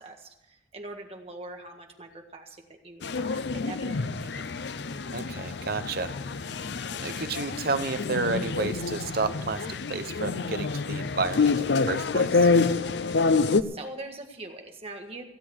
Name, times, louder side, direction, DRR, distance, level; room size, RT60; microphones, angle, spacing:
voice 1, 0.0-4.6 13.0-13.2 13.6-15.2, right 2 dB, 30° right, 3 dB, 1.6 m, -43 dB
sound 1, 3.0-13.6, left 4 dB, 65° left, 0.5 m, -27 dB
voice 2, 5.1-6.2 6.5-6.7 7.0-12.5, right 3 dB, 50° right, 11 dB, 0.8 m, -31 dB
16.5 x 7.8 x 8.0 m, 0.92 s
head